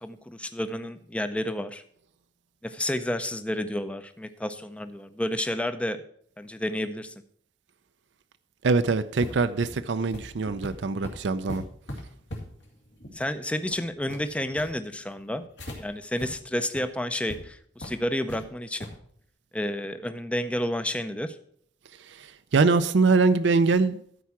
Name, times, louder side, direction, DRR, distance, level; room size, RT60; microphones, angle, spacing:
voice 1, 0.0-1.8 2.6-6.0 6.4-7.1 13.1-15.4 15.8-18.9 19.5-21.4, left 1 dB, 5° left, 10 dB, 0.5 m, -30 dB
voice 2, 8.6-11.6 22.1-24.0, right 4 dB, 75° right, 11 dB, 0.5 m, -23 dB
sound 1, 9.2-15.8 16.2-16.3 16.6-16.8 17.3-17.4 17.8-18.4 18.8-19.0, equal, 75° left, 2.5 m, -40 dB
12.5 x 4.7 x 5.9 m, 0.62 s
head